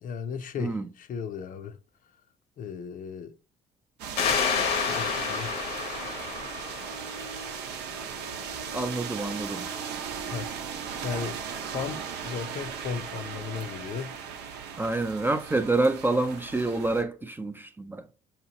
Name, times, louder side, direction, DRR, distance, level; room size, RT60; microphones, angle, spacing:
voice 1, 0.0-1.8 2.6-3.3 4.9-5.5 10.3-10.5 11.0-14.1, left 6 dB, 55° left, 0.5 m, -36 dB
sound 1, 4.0-17.0, right 6 dB, 90° right, 0.8 m, -37 dB
sound 2, 4.2-7.5, left 6 dB, 90° left, 1.0 m, -29 dB
voice 2, 8.7-9.7 14.8-18.1, right 2 dB, 10° right, 0.3 m, -27 dB
6.7 x 2.9 x 2.8 m
cardioid pair, 110°, 17 cm